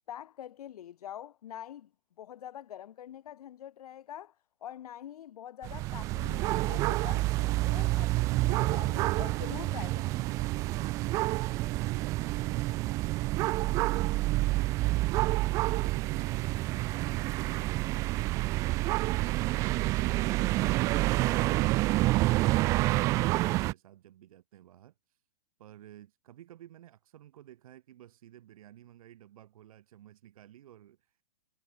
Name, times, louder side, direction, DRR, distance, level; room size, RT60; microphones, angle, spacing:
voice 1, 0.0-1.9 2.2-4.4 4.6-10.6, left 11 dB, 60° left, 4.3 m, -45 dB
sound 1, 5.6-23.7, right 19 dB, 15° right, 0.4 m, -28 dB
voice 2, 11.7-25.2 25.6-31.2, right 12 dB, 55° right, 3.3 m, -53 dB
hypercardioid pair, 155°, 21 cm